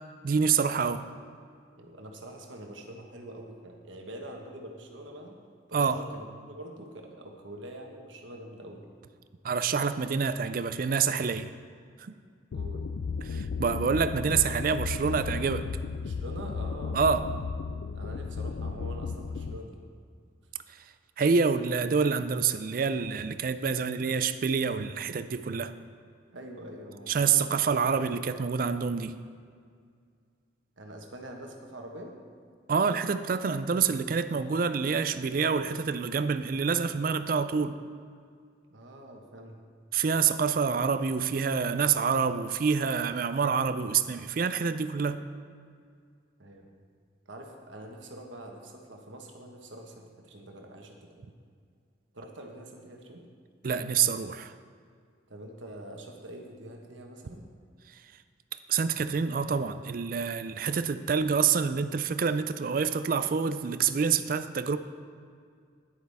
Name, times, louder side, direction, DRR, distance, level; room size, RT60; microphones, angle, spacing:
voice 1, 0.2-1.1 5.7-6.0 9.4-11.5 12.0-12.1 13.3-15.7 16.9-17.3 21.2-25.7 27.1-29.2 32.7-37.8 39.9-45.2 53.6-54.5 58.7-64.8, right 6 dB, 50° right, 12 dB, 0.4 m, -27 dB
voice 2, 1.8-5.4 5.7-8.9 12.5-12.9 16.0-17.1 17.9-19.8 26.3-27.5 30.8-32.1 38.7-39.6 46.4-46.7 47.3-51.3 52.1-53.2 55.3-57.5, right 1 dB, 85° right, 2 dB, 1.3 m, -45 dB
sound 1, 12.5-19.6, left 5 dB, 85° left, 0.4 m, -34 dB
10.0 x 9.4 x 3.5 m, 2.1 s
head